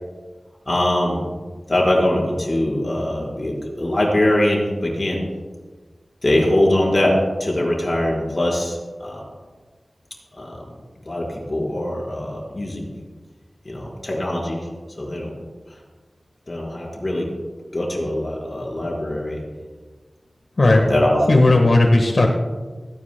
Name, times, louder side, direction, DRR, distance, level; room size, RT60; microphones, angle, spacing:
voice 1, 0.7-1.3 1.7-5.2 6.2-9.2 10.4-10.6 11.0-12.9 13.6-14.7 15.0-15.3 16.5-17.3 17.7-19.4 20.6-21.4, left 1 dB, 40° left, -2 dB, 4.4 m, -22 dB
voice 2, 21.3-22.4, left 2 dB, 65° left, 1 dB, 1.3 m, -15 dB
29.0 x 10.0 x 2.2 m, 1.4 s
wide cardioid pair, 55°, 0 cm